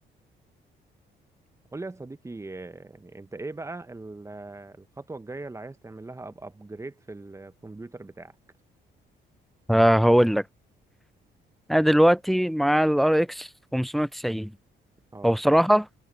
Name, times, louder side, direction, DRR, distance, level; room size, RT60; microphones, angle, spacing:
voice 1, 1.7-8.3 15.1-15.4, right 2 dB, 15° right, 1.0 m, -40 dB
voice 2, 9.7-10.4 11.7-14.5 15.2-15.9, equal, ahead, 0.3 m, -21 dB
cardioid pair, 90°, 20 cm